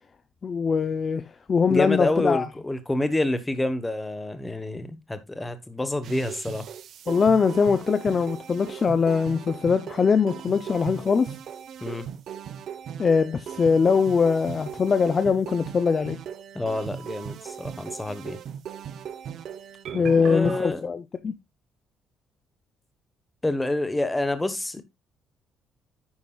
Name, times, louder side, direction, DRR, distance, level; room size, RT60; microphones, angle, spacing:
voice 1, 0.4-2.5 7.1-11.3 13.0-16.2 19.9-21.3, left 5 dB, 30° left, 0.6 m, -22 dB
voice 2, 1.7-6.7 11.8-12.1 16.5-18.4 20.2-20.8 23.4-24.8, left 2 dB, 10° left, 1.1 m, -28 dB
sound 1, 6.0-20.7, right 8 dB, 55° right, 0.9 m, -38 dB
9.6 x 9.6 x 2.3 m
cardioid pair, 160°, 0 cm